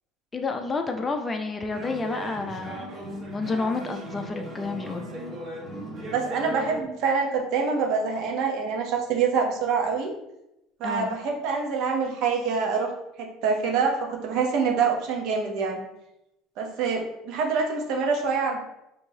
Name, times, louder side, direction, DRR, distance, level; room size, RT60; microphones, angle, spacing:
voice 1, 0.3-2.9 3.3-5.1 10.8-11.2, left 3 dB, 20° left, 5 dB, 0.4 m, -30 dB
sound 1, 1.7-6.8, right 1 dB, 35° right, 0.9 m, -37 dB
voice 2, 6.1-10.1 10.8-12.9 13.2-15.8 16.6-18.6, right 5 dB, 65° right, 1 dB, 0.8 m, -25 dB
4.6 x 2.7 x 2.7 m, 0.86 s
cardioid pair, 125°, 0 cm